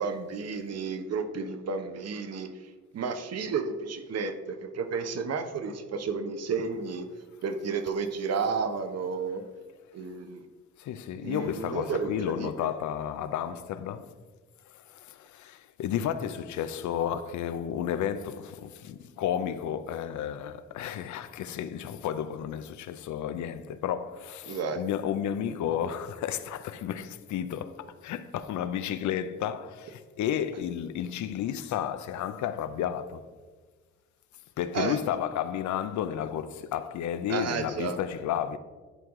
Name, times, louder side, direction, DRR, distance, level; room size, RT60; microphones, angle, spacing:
voice 1, 0.0-2.5 2.9-7.1 7.4-9.4 9.9-10.4 11.2-12.5 24.5-24.8 34.7-35.0 37.3-38.0, right 5 dB, 55° right, 0.9 m, -32 dB
voice 2, 10.8-14.1 14.7-33.2 34.6-38.6, left 9 dB, 70° left, 0.6 m, -32 dB
11.0 x 4.6 x 3.7 m
cardioid pair, 90°, 30 cm